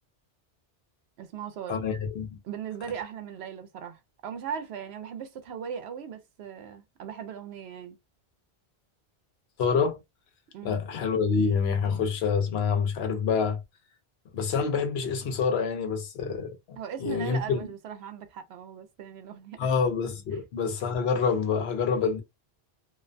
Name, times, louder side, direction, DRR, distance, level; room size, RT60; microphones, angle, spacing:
voice 1, 1.2-1.8 2.4-8.0 10.5-10.8 16.8-19.7 20.3-20.4, right 8 dB, 80° right, 0.8 m, -38 dB
voice 2, 1.7-2.4 9.6-10.0 10.6-13.6 14.3-17.6 19.6-22.2, left 5 dB, 75° left, 0.9 m, -27 dB
2.5 x 2.1 x 2.5 m
omnidirectional pair, 1.1 m